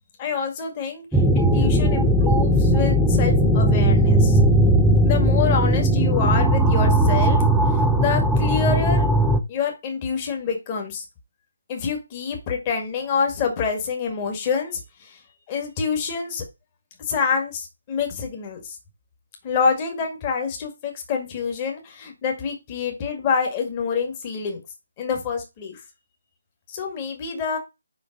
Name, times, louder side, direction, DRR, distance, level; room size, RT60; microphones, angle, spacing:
voice 1, 0.2-4.4 5.0-7.4 8.0-9.1 9.5-11.1 11.7-15.2 15.5-16.4 17.1-18.8 19.4-24.6 25.0-25.8 26.7-27.6, left 6 dB, 25° left, 1.9 m, -27 dB
sound 1, 1.1-9.4, right 1 dB, ahead, 0.7 m, -18 dB
5.6 x 5.1 x 5.2 m
figure-of-eight pair, 145°, 0 cm